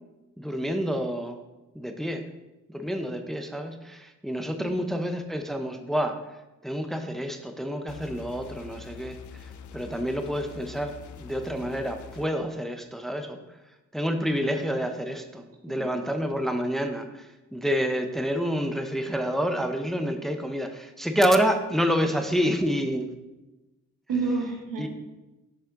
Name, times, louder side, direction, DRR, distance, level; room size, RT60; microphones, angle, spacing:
voice 1, 0.4-1.4 1.7-2.2 2.7-6.2 6.6-13.4 13.9-23.1 24.8-24.9, equal, ahead, 6 dB, 0.7 m, -28 dB
sound 1, 7.9-12.3, left 7 dB, 65° left, 0.5 m, -44 dB
voice 2, 24.1-24.9, right 4 dB, 85° right, 1 dB, 1.3 m, -30 dB
6.6 x 5.6 x 3.7 m, 1.0 s
supercardioid pair, 45°, 33 cm